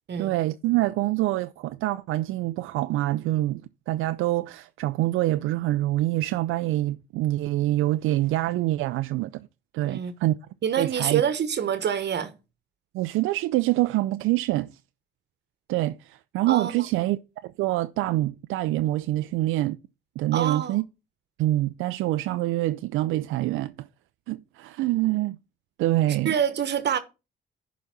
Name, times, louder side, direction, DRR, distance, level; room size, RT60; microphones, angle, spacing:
voice 1, 0.2-9.5 9.7-10.4 10.8-11.2 12.9-14.7 15.7-17.2 17.4-19.8 20.2-20.8 21.4-23.9 24.3-25.4 25.8-26.3, right 16 dB, 75° right, 0.5 m, -25 dB
voice 2, 10.6-12.4 16.5-16.9 20.3-20.8 26.1-27.0, right 8 dB, 55° right, 1.3 m, -26 dB
11.0 x 4.1 x 5.8 m
hypercardioid pair, 55°, 21 cm